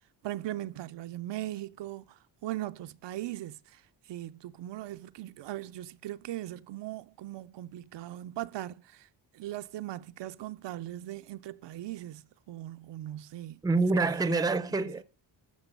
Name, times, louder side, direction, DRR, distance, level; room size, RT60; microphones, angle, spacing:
voice 1, 0.2-9.1 9.3-13.6 14.0-14.9, right 14 dB, 65° right, 0.6 m, -39 dB
voice 2, 13.6-15.0, right 3 dB, 10° right, 0.5 m, -26 dB
14.5 x 6.2 x 5.3 m
cardioid pair, 135°, 46 cm